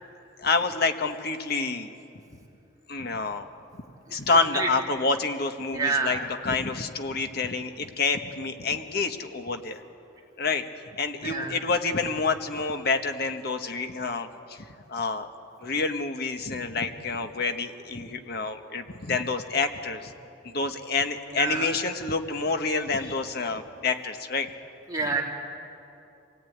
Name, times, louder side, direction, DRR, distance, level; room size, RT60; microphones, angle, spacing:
voice 1, 0.4-1.9 2.9-3.5 4.1-9.8 10.4-10.6 10.9-15.3 15.6-20.1 20.4-24.5, left 4 dB, 55° left, 7 dB, 1.4 m, -28 dB
voice 2, 4.1-4.7 5.7-6.2 11.2-11.6 21.3-21.7 24.9-25.2, right 4 dB, 20° right, -2 dB, 3.2 m, -28 dB
26.5 x 18.0 x 9.4 m, 2.8 s
head